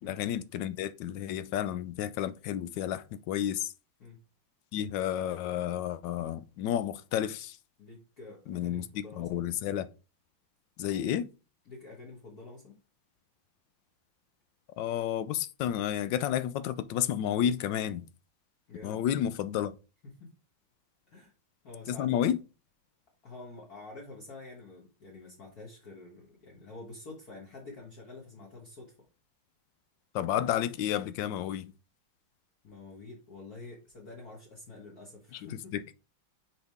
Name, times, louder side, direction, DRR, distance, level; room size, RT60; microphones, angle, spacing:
voice 1, 0.0-3.7 4.7-7.6 8.5-8.9 9.2-9.9 10.8-11.3 14.8-18.0 18.8-19.8 21.9-22.4 30.1-31.7 35.3-35.8, left 10 dB, 75° left, 1.1 m, -31 dB
voice 2, 7.8-9.4 11.6-12.8 18.7-19.0 20.0-20.3 21.1-21.3 21.6-22.3 23.2-29.0 32.6-35.7, left 3 dB, 50° left, 1.8 m, -48 dB
6.3 x 5.1 x 3.5 m
omnidirectional pair, 2.2 m